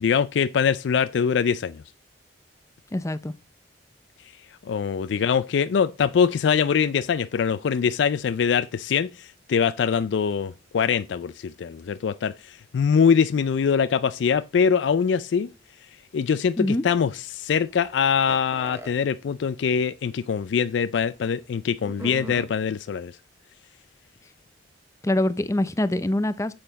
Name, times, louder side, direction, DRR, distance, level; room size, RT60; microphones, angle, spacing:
voice 1, 0.0-1.8 4.7-9.1 9.5-12.3 12.7-15.5 16.1-23.1, left 6 dB, 75° left, 0.4 m, -23 dB
voice 2, 2.9-3.3 16.6-16.8 25.0-26.5, left 1 dB, 15° left, 0.5 m, -24 dB
sound 1, 18.3-18.9 19.9-20.0 20.2-20.3 21.8-22.5, equal, 15° right, 0.9 m, -38 dB
7.8 x 6.2 x 3.9 m
head